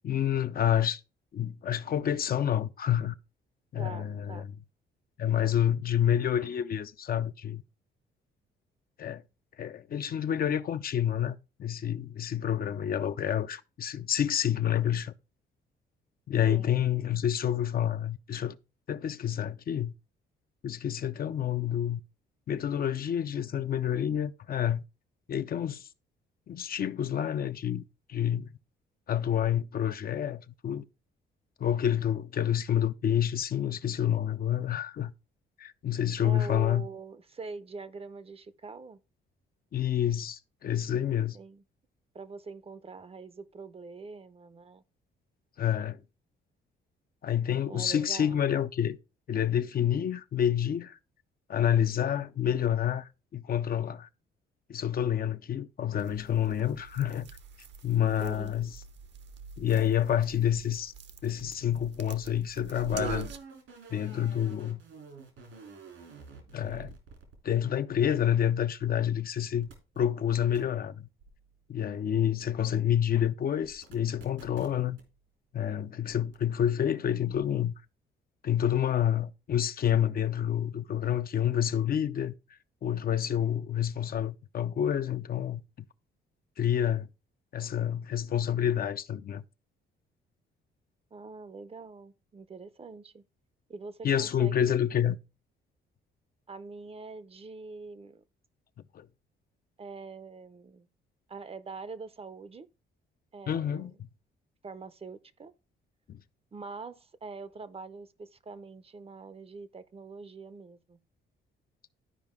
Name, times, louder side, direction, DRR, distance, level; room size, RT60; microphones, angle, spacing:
voice 1, 0.0-1.0 1.3-3.1 3.7-4.5 5.2-7.6 9.0-9.2 9.6-15.1 16.3-18.6 18.9-19.9 20.6-22.0 22.5-24.8 25.3-25.9 26.5-28.5 29.1-30.9 31.6-35.1 35.6-36.9 39.7-41.4 45.6-46.0 47.2-49.0 49.3-51.0 51.5-54.1 54.7-57.3 57.8-58.7 59.6-60.9 61.2-63.3 63.9-64.8 66.5-67.0 67.4-69.7 70.0-71.1 71.7-75.0 75.5-77.7 78.4-82.3 82.8-85.6 86.6-87.1 87.5-89.4 94.0-95.2 98.9-99.1 103.5-104.1 106.1-106.2, left 10 dB, 50° left, 0.5 m, -28 dB
voice 2, 3.7-4.5 5.2-5.5 16.5-16.8 36.2-39.0 41.3-41.6 42.1-44.8 47.7-48.4 58.2-58.5 91.1-93.2 93.7-94.7 96.5-98.2 99.8-100.9 101.3-102.7 103.3-104.0 104.6-105.5 106.5-111.0, right 4 dB, 30° right, 0.6 m, -44 dB
sound 1, 55.9-63.4, right 6 dB, 65° right, 1.0 m, -44 dB
sound 2, 62.9-69.2 69.5-70.1 70.5-70.6 71.2-71.5 72.4-72.7 73.6-75.0 76.1-76.4 76.9-77.0 77.3-77.6, right 4 dB, 80° right, 3.1 m, -50 dB
12.5 x 4.8 x 3.6 m
cardioid pair, 90°, 20 cm